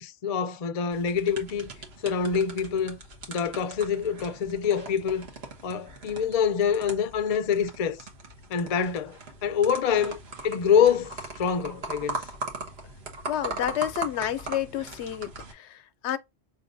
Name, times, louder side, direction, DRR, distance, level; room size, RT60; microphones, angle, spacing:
voice 1, 0.0-1.7 2.0-3.0 3.3-5.3 5.6-8.0 8.5-12.3, left 7 dB, 50° left, 0.4 m, -26 dB
sound 1, 0.9-15.5, right 3 dB, 70° right, 1.3 m, -40 dB
voice 2, 13.3-16.2, left 11 dB, 85° left, 0.9 m, -30 dB
5.3 x 3.2 x 2.5 m
omnidirectional pair, 1.1 m